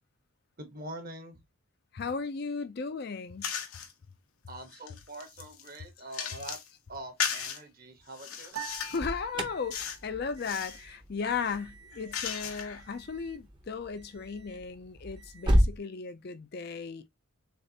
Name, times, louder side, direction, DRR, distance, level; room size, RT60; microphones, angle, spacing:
voice 1, 0.6-1.4 4.5-6.6 6.9-8.6, right 1 dB, 45° right, 1.1 m, -44 dB
voice 2, 1.9-3.4 8.9-17.1, left 5 dB, 50° left, 0.5 m, -36 dB
sound 1, 3.4-3.9 4.5-6.7 7.2-7.6 8.1-9.1 9.7-10.1 10.3-10.8 11.4-12.9, left 7 dB, 90° left, 1.0 m, -36 dB
sound 2, 8.5-10.0, right 9 dB, 85° right, 0.9 m, -43 dB
Alarm, 8.7-15.8, equal, 20° right, 0.7 m, -33 dB
6.6 x 2.5 x 2.8 m
head